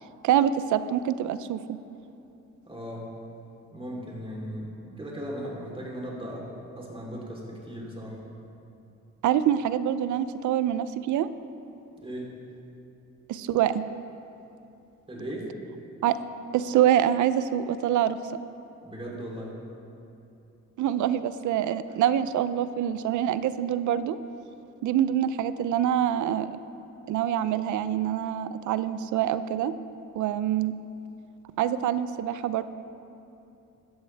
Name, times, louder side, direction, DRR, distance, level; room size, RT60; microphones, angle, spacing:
voice 1, 0.2-1.8 9.2-11.3 13.3-13.8 16.0-16.2 16.5-18.2 20.8-24.2 24.8-26.5 27.1-29.7 30.1-30.7 31.6-32.6, right 10 dB, 75° right, 13 dB, 0.6 m, -25 dB
voice 2, 2.7-3.1 3.7-4.7 5.0-6.5 6.8-8.2 12.0-12.3 15.1-15.5 18.8-19.5, equal, 20° right, -3 dB, 3.6 m, -37 dB
16.5 x 12.5 x 3.5 m, 2.8 s
cardioid pair, 90°, 30 cm